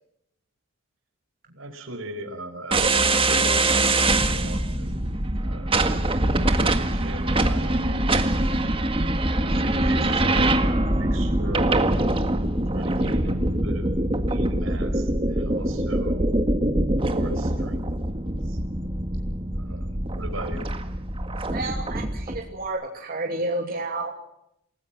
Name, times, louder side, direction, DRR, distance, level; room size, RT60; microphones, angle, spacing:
voice 1, 1.5-5.7 6.2-8.0 8.8-12.0 12.7-13.9 14.3-16.3 17.0-18.1 18.4-18.6 19.6-20.7, right 1 dB, 80° right, 6 dB, 5.3 m, -39 dB
sound 1, 2.7-22.4, right 1 dB, 25° right, 1.8 m, -23 dB
voice 2, 21.5-24.1, right 2 dB, 45° right, 1 dB, 2.9 m, -30 dB
29.0 x 19.0 x 6.1 m, 0.77 s
head